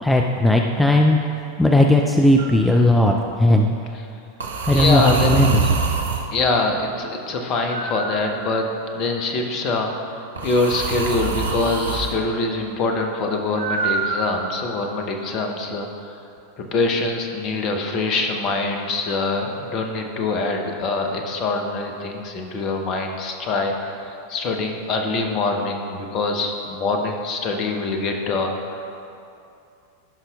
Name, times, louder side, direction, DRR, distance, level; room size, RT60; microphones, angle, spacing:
voice 1, 0.0-1.2 1.6-3.7 4.6-5.6, left 1 dB, 5° left, 2 dB, 0.4 m, -16 dB
sound 1, 2.4-2.7 4.4-6.3 7.7-8.8 10.4-12.1 13.6-14.8, right 4 dB, 70° right, 0.7 m, -25 dB
voice 2, 4.7-5.5 6.3-8.7 8.9-16.2 16.6-28.9, left 3 dB, 35° left, 3 dB, 1.0 m, -24 dB
16.0 x 5.6 x 2.4 m, 2.6 s
figure-of-eight pair, 90°, 0 cm